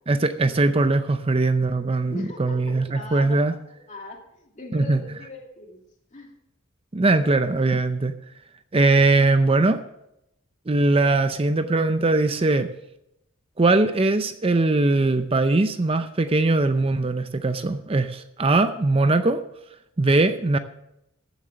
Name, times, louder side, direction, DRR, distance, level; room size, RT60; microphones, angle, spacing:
voice 1, 0.1-3.5 4.7-5.0 6.9-8.1 8.7-9.8 10.7-12.7 13.6-19.4 20.0-20.6, right 2 dB, 30° right, 10 dB, 0.5 m, -21 dB
voice 2, 2.1-3.6 3.9-5.8 6.1-6.3, left 2 dB, 40° left, 0 dB, 2.5 m, -40 dB
14.5 x 7.2 x 6.3 m, 0.82 s
head